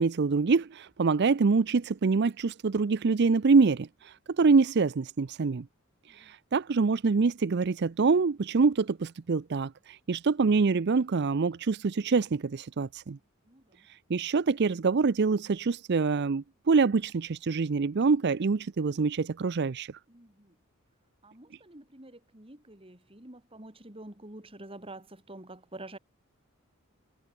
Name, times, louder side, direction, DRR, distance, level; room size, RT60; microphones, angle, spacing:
voice 1, 0.0-5.7 6.1-13.2 13.9-19.9, right 4 dB, 50° right, 0.5 m, -25 dB
voice 2, 13.5-13.8 20.1-20.6 21.2-26.0, right 2 dB, 25° right, 2.9 m, -47 dB
head